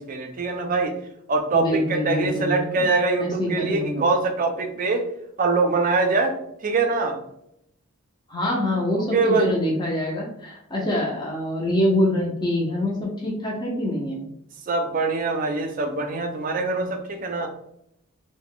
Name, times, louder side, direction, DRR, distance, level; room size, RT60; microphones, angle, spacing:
voice 1, 0.1-0.9 1.3-5.0 5.4-6.3 6.6-7.2 9.1-9.5 14.7-17.5, right 3 dB, 35° right, 4 dB, 0.4 m, -23 dB
voice 2, 1.5-2.9 3.2-4.1 8.3-14.2, left 1 dB, 20° left, -3 dB, 0.5 m, -25 dB
2.3 x 2.1 x 3.5 m, 0.76 s
head